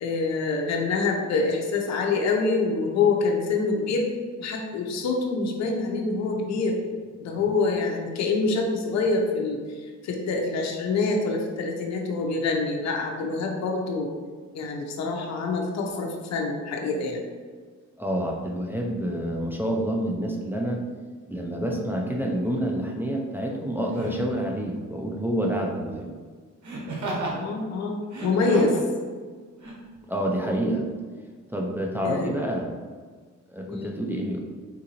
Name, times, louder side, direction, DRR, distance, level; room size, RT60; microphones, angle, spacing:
voice 1, 0.0-4.1 4.4-6.8 7.2-14.1 14.5-17.2 27.3-28.8 32.0-32.3 33.7-33.9, left 3 dB, 60° left, 1 dB, 0.6 m, -26 dB
voice 2, 18.0-20.8 21.3-26.1 30.1-30.9 31.5-32.7 33.5-34.4, right 1 dB, 5° right, -1 dB, 0.4 m, -28 dB
Laughter, 22.4-22.6 23.9-24.3 26.6-27.4 28.0-28.9 29.6-29.7, right 2 dB, 70° right, 1.0 m, -33 dB
3.7 x 2.6 x 2.8 m, 1.5 s
cardioid pair, 90°, 30 cm